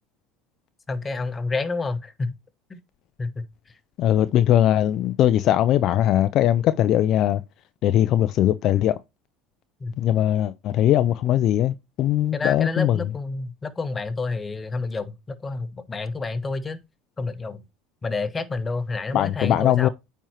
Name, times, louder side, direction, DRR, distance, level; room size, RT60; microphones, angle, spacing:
voice 1, 0.9-2.4 2.7-2.8 3.2-3.5 9.8-10.0 12.3-16.8 17.2-17.6 18.0-19.9, left 3 dB, 25° left, 0.9 m, -29 dB
voice 2, 4.0-7.4 7.8-9.0 10.0-13.0 19.1-19.9, left 12 dB, 55° left, 0.4 m, -20 dB
9.0 x 4.5 x 2.9 m
hypercardioid pair, 85°, 0 cm